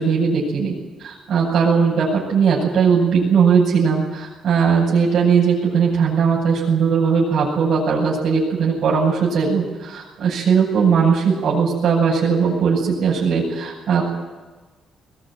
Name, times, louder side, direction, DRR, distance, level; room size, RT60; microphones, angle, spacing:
voice 1, 0.0-14.1, right 6 dB, 65° right, -7 dB, 7.9 m, -18 dB
22.0 x 20.0 x 9.3 m, 1.2 s
cardioid pair, 90°, 0 cm